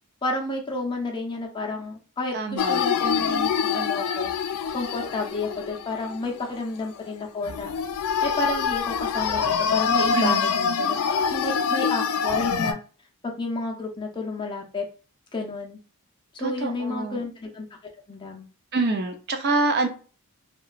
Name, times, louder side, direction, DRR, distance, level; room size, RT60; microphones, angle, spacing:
voice 1, 0.2-4.3 4.7-7.7 8.2-12.8 13.2-14.8 15.3-15.8 16.3-17.7 18.1-18.5, left 3 dB, 20° left, 0.5 m, -31 dB
voice 2, 2.3-2.8 10.1-10.5 16.4-17.2 18.7-19.9, right 3 dB, 45° right, 0.5 m, -26 dB
sound 1, 2.6-6.6 6.9-7.1 7.4-12.7, left 6 dB, 75° left, 0.3 m, -25 dB
2.8 x 2.2 x 2.4 m
head